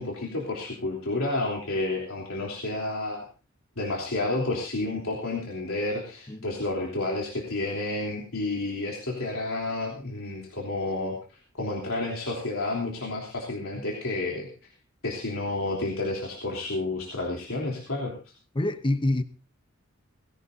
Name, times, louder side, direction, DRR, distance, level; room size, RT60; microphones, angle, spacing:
voice 1, 0.0-3.3 3.8-11.2 11.6-14.5 15.0-18.3, left 2 dB, 85° left, 3.4 m, -30 dB
voice 2, 18.5-19.2, left 1 dB, 25° left, 0.9 m, -26 dB
19.0 x 16.5 x 2.7 m
head